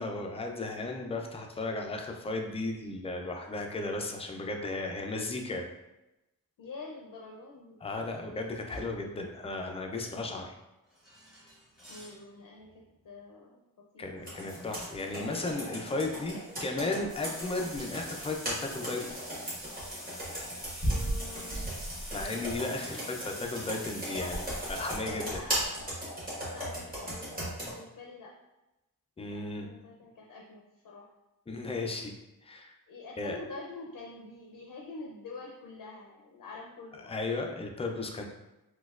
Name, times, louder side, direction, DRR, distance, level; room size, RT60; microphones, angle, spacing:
voice 1, 0.0-5.7 7.8-10.5 14.0-19.0 22.1-24.4 24.7-25.4 29.2-29.7 31.5-32.1 32.4-32.7 33.2-33.4 37.0-38.2, left 2 dB, 20° left, 2 dB, 0.3 m, -35 dB
voice 2, 6.6-7.8 8.3-8.4 11.9-14.5 20.8-21.7 22.9-23.0 24.0-24.4 25.1-25.9 26.5-28.3 29.3-31.1 32.9-37.4, left 3 dB, 70° left, -1 dB, 0.5 m, -47 dB
sound 1, 8.7-9.2 10.9-12.2 12.6-12.9 14.5-16.7 17.1-25.0, equal, ahead, 0.9 m, -46 dB
Computer keyboard, 14.2-27.7, right 1 dB, 25° right, 1.2 m, -37 dB
4.1 x 2.3 x 2.3 m, 0.96 s
wide cardioid pair, 135°, 35 cm